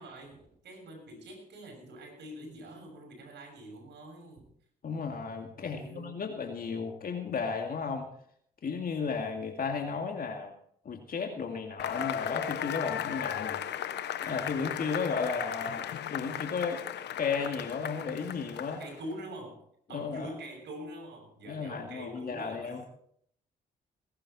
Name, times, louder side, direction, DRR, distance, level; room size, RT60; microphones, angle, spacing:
voice 1, 0.0-4.5 5.6-6.3 18.8-22.8, right 1 dB, 70° right, 3 dB, 7.0 m, -45 dB
voice 2, 4.8-8.1 8.6-10.5 10.8-13.6 14.2-16.8 17.2-18.8 19.9-20.3 21.5-22.8, left 5 dB, 55° left, 3 dB, 2.4 m, -34 dB
Cheering / Applause / Crowd, 11.8-19.0, left 10 dB, 70° left, 1.2 m, -36 dB
20.0 x 11.5 x 4.3 m, 0.64 s
supercardioid pair, 55°, 18 cm